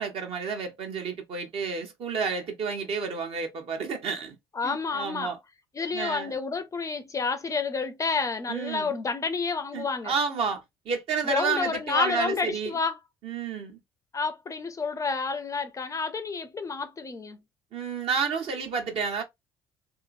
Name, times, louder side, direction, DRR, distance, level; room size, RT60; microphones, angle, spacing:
voice 1, 0.0-4.3 4.6-5.4 5.9-6.4 8.5-9.0 9.7-12.8 13.2-13.8 17.7-19.2, right 5 dB, 50° right, 0.9 m, -30 dB
voice 2, 4.5-5.4 5.7-10.1 11.2-13.0 14.1-17.4, left 4 dB, 25° left, 0.5 m, -29 dB
2.8 x 2.5 x 2.4 m
figure-of-eight pair, 55°, 12 cm